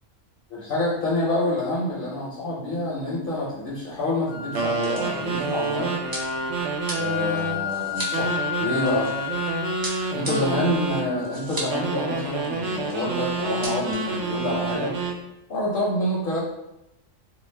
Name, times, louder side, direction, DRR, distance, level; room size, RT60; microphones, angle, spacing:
voice 1, 0.5-5.9 7.0-9.1 10.1-14.9 15.5-16.4, left 1 dB, 55° left, -6 dB, 0.7 m, -27 dB
sound 1, 3.0-3.1 3.3-3.4 4.2-9.4 9.8-11.8 12.1-12.2 12.4-13.0 13.3-13.9, right 1 dB, 35° right, 0.3 m, -37 dB
sound 2, 4.3-12.3, left 8 dB, 80° left, 0.9 m, -33 dB
sound 3, 4.5-7.6 8.1-11.1 11.7-15.2, right 3 dB, 70° right, 0.8 m, -28 dB
2.3 x 2.3 x 3.2 m, 0.90 s
omnidirectional pair, 1.3 m